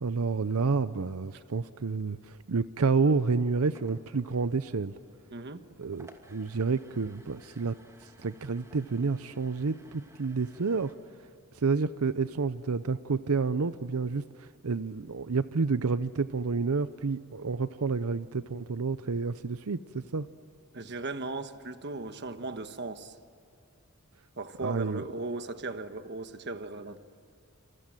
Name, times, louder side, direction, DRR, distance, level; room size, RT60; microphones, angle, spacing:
voice 1, 0.0-4.9 5.8-10.9 11.5-20.3 24.6-25.0, right 4 dB, 85° right, 0.7 m, -29 dB
sound 1, 3.7-10.9, right 1 dB, 15° right, 2.5 m, -58 dB
voice 2, 5.3-5.6 20.7-23.1 24.4-27.0, right 3 dB, 50° right, 1.3 m, -37 dB
28.0 x 27.5 x 7.8 m
head